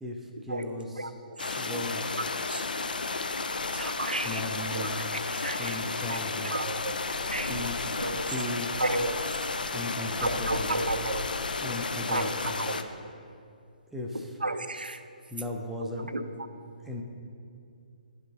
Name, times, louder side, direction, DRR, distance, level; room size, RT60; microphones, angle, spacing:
voice 1, 0.0-1.1 1.5-2.1 4.2-4.9 5.6-6.5 7.5-8.8 9.7-10.8 11.6-12.6 13.9-14.4 15.3-16.1 16.8-17.0, left 1 dB, 5° right, 0 dB, 0.5 m, -37 dB
voice 2, 1.0-1.6 2.4-2.7 3.7-4.4 4.7-5.8 6.1-6.2 6.5-6.9 7.3-7.5 8.0-8.3 8.8-9.2 10.2-11.3 12.1-12.8 14.4-15.0 16.1-16.2, right 2 dB, 80° right, 9 dB, 0.4 m, -33 dB
sound 1, 1.4-12.8, left 3 dB, 70° left, 0.4 m, -32 dB
10.5 x 5.2 x 2.8 m, 2.4 s
figure-of-eight pair, 135°, 5 cm